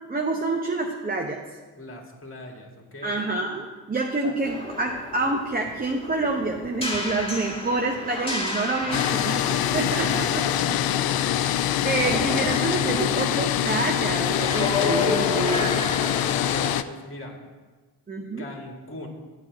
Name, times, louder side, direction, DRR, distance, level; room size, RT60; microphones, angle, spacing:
voice 1, 0.1-1.4 3.0-10.1 11.4-11.5 11.8-15.8 18.1-18.5, right 3 dB, 20° right, 1 dB, 0.9 m, -27 dB
voice 2, 1.7-3.2 9.7-10.9 16.2-17.4 18.4-19.1, left 1 dB, 25° left, 1 dB, 2.1 m, -38 dB
sound 1, 4.4-16.7, left 3 dB, 10° left, 2.3 m, -31 dB
sound 2, 8.9-16.8, left 12 dB, 55° left, 0.5 m, -24 dB
8.6 x 4.4 x 7.2 m, 1.3 s
supercardioid pair, 60°, 46 cm